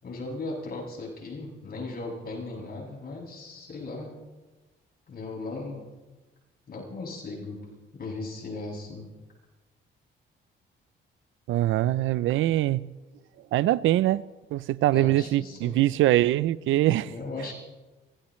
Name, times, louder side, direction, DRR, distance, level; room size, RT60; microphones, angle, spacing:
voice 1, 0.0-4.1 5.1-5.9 6.7-7.7 7.9-9.1 14.9-15.8 17.0-17.5, left 3 dB, 50° left, 7.1 m, -37 dB
voice 2, 11.5-12.9 13.5-14.2 14.5-17.1, right 15 dB, 80° right, 0.5 m, -23 dB
24.5 x 18.0 x 3.2 m
cardioid pair, 90°, 20 cm